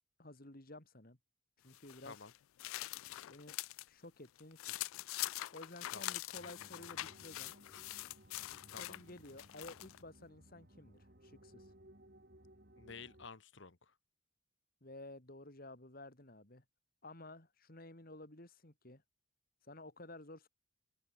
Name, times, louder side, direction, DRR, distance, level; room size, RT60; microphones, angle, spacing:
voice 1, 0.2-1.2 1.6-2.2 3.3-3.5 3.9-4.8 5.5-7.5 8.8-11.7 14.8-16.6 17.0-19.0 19.6-20.5, left 2 dB, 45° left, 2.9 m, -53 dB
sound 1, 1.7-3.9 4.2-10.0, left 17 dB, 75° left, 0.3 m, -44 dB
sound 2, 6.3-13.3, right 1 dB, 45° right, 4.2 m, -61 dB
voice 2, 8.7-9.0 12.8-13.9, left 4 dB, 60° left, 1.2 m, -52 dB
open air
head